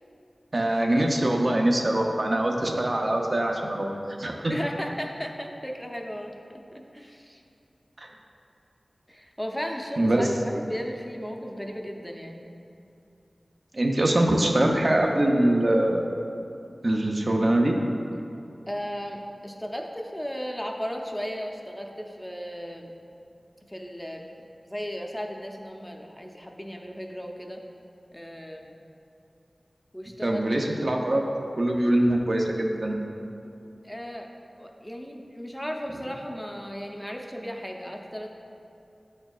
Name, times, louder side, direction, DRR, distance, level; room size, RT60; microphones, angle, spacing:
voice 1, 0.5-3.9 4.2-4.5 8.0-8.1 10.0-10.3 13.7-16.1 16.8-17.7 30.2-31.2 31.6-32.9, right 1 dB, 55° right, 1 dB, 0.6 m, -23 dB
voice 2, 4.5-6.3 6.9-7.4 9.1-12.5 18.7-22.9 23.7-24.2 24.7-27.6 28.1-28.8 29.9-30.7 33.8-34.3 34.6-38.3, equal, 10° left, 2 dB, 0.6 m, -35 dB
9.7 x 4.3 x 2.4 m, 2.6 s
wide cardioid pair, 50°, 0 cm